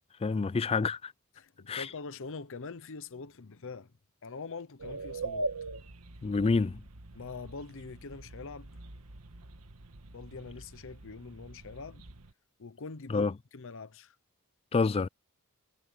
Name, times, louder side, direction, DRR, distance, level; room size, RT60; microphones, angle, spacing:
voice 1, 0.2-1.1 1.7-1.9 6.2-6.8 13.1-13.3 14.7-15.1, left 4 dB, 25° left, 0.3 m, -27 dB
voice 2, 1.4-3.9 4.2-5.5 7.1-8.7 10.1-12.0 12.6-14.2, left 4 dB, 65° left, 0.8 m, -44 dB
sound 1, 4.8-12.3, right 2 dB, 90° right, 1.7 m, -42 dB
head